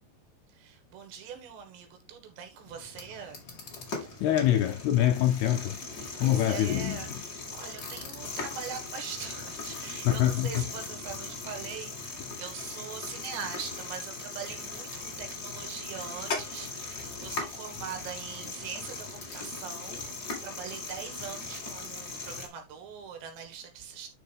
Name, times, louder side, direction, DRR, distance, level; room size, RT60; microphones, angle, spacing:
voice 1, 0.5-3.4 6.1-24.1, right 7 dB, 75° right, 3.8 m, -42 dB
sound 1, 2.6-22.5, left 3 dB, 40° left, 1.5 m, -39 dB
voice 2, 4.2-5.8 6.2-7.2 10.0-10.7, left 12 dB, 80° left, 2.4 m, -25 dB
10.5 x 5.0 x 3.4 m
omnidirectional pair, 5.3 m